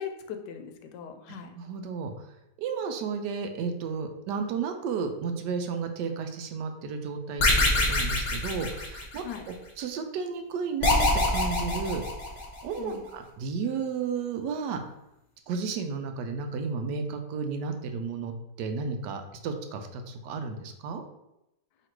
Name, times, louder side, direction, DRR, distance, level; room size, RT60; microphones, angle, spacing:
voice 1, 0.0-1.5 9.2-9.5 12.8-13.0, left 7 dB, 85° left, 6 dB, 1.2 m, -39 dB
voice 2, 1.5-2.1 2.6-9.2 9.8-12.0 12.6-14.8 15.5-18.3 18.6-21.0, right 5 dB, 90° right, 6 dB, 1.2 m, -33 dB
sound 1, 7.4-9.4 10.8-12.6, left 2 dB, 35° left, 0.7 m, -25 dB
3.0 x 2.9 x 4.4 m, 0.87 s
omnidirectional pair, 1.8 m